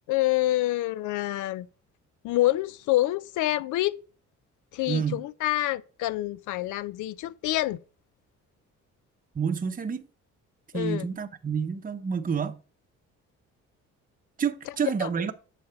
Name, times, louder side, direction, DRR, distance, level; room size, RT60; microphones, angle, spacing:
voice 1, 0.1-1.7 2.2-4.0 4.7-7.8 10.7-11.1 15.0-15.1, left 16 dB, 85° left, 0.5 m, -27 dB
voice 2, 4.9-5.2 9.4-10.1 10.7-12.6 14.4-15.3, right 6 dB, 30° right, 0.7 m, -28 dB
8.2 x 4.1 x 6.7 m
cardioid pair, 90°, 30 cm